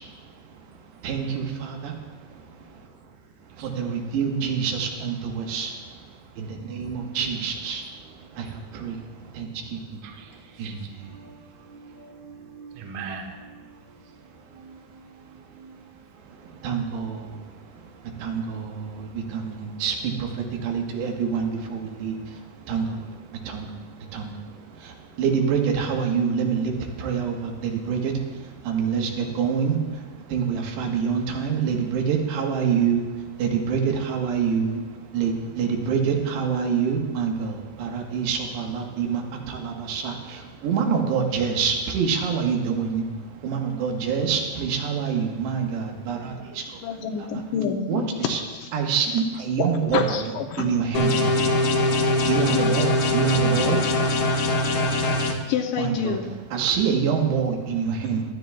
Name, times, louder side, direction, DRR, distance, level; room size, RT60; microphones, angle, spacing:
voice 1, 1.0-1.9 3.6-5.7 6.4-7.8 8.4-8.5 8.7-8.9 9.4-9.5 10.6-10.8 16.6-17.2 18.2-20.3 20.6-22.2 22.7-22.9 23.5-23.7 24.1-24.3 25.2-26.7 27.0-28.1 28.6-29.8 30.3-33.0 33.4-34.8 35.1-39.2 39.5-43.0 43.4-46.3 47.9-48.0 48.3-48.4 48.7-50.0 50.6-51.4 52.3-53.8 55.8-56.1 56.5-58.2, right 6 dB, 85° right, 2 dB, 3.5 m, -25 dB
voice 2, 3.6-4.0 7.1-7.5 8.0-8.3 10.0-15.8 16.2-16.8, right 5 dB, 65° right, 1 dB, 2.1 m, -43 dB
voice 3, 46.8-48.7 49.1-49.2 49.6-50.8 55.5-56.3, left 7 dB, 80° left, 2 dB, 2.0 m, -28 dB
sound 1, 50.9-55.3, left 2 dB, 65° left, 2.0 m, -22 dB
20.0 x 13.0 x 2.3 m, 1.2 s
omnidirectional pair, 4.8 m